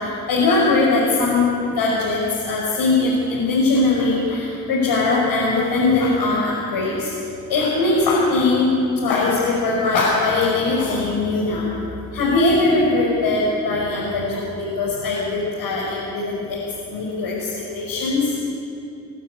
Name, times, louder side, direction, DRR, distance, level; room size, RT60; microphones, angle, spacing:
voice 1, 0.3-1.4 1.8-2.2 2.4-7.1 7.5-8.7 9.0-11.7 12.1-14.4 14.8-16.6 16.9-18.2, left 3 dB, 70° left, -6 dB, 6.4 m, -20 dB
23.0 x 12.0 x 9.8 m, 2.8 s
supercardioid pair, 65°, 40 cm